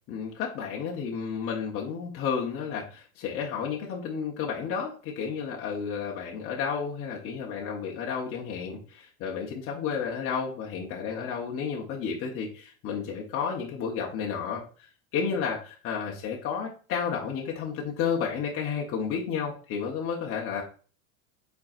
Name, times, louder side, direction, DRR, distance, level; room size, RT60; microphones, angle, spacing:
voice 1, 0.1-14.6 15.1-20.6, left 6 dB, 30° left, -2 dB, 1.0 m, -32 dB
4.5 x 4.5 x 2.4 m, 0.38 s
supercardioid pair, 130°, 42 cm